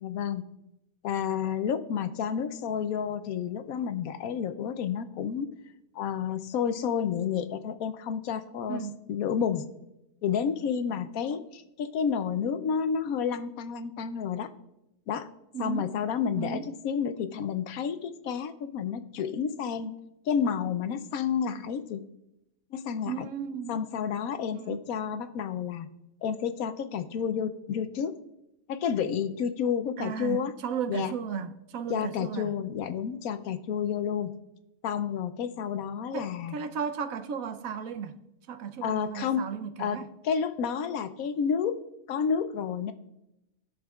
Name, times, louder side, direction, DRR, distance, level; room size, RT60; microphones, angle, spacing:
voice 1, 0.0-0.4 1.0-5.5 5.9-8.8 9.1-9.6 10.2-14.5 15.1-15.3 15.6-19.9 20.3-22.0 22.7-23.3 23.7-25.9 26.2-28.1 28.7-30.5 30.9-31.1 31.9-34.3 34.8-36.6 38.8-39.4 39.8-41.8 42.1-42.9, left 7 dB, 80° left, 1.1 m, -30 dB
voice 2, 8.7-9.0 15.5-15.9 16.4-16.7 23.1-23.8 24.5-24.9 30.0-32.5 36.1-38.2 38.5-40.1, right 7 dB, 75° right, 1.1 m, -35 dB
18.5 x 6.4 x 2.3 m
omnidirectional pair, 1.5 m